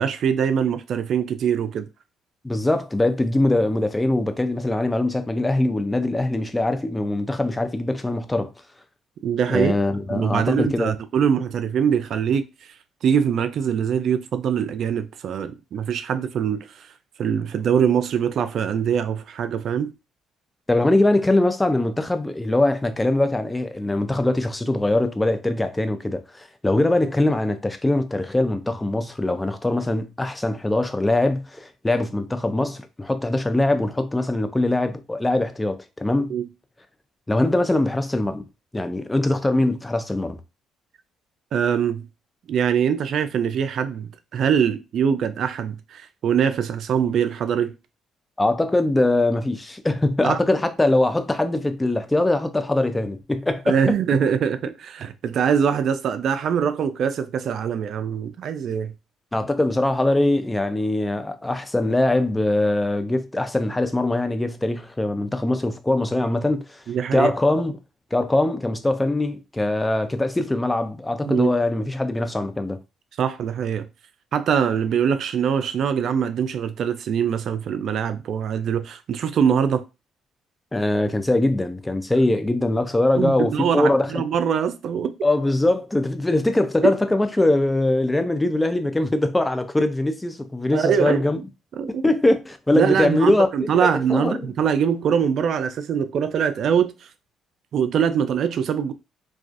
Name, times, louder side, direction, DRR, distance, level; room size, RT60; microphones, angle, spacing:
voice 1, 0.0-1.9 9.2-9.7 10.1-12.5 13.0-16.9 17.2-19.9 36.2-36.4 41.5-42.1 42.5-47.7 50.2-50.4 53.7-58.9 66.9-67.3 71.2-71.5 73.2-73.9 74.3-79.8 83.2-85.1 86.8-86.9 90.7-91.3 91.8-92.0 92.7-97.1 97.7-98.9, right 7 dB, 65° right, 0.3 m, -23 dB
voice 2, 2.4-8.5 9.5-10.9 20.7-36.3 37.3-38.5 38.7-40.4 48.4-53.8 59.3-66.8 67.1-67.8 68.1-72.8 80.7-84.2 85.2-91.4 91.9-93.5 93.7-94.4, left 2 dB, 15° left, 0.4 m, -22 dB
2.4 x 2.3 x 2.4 m
supercardioid pair, 75°, 0 cm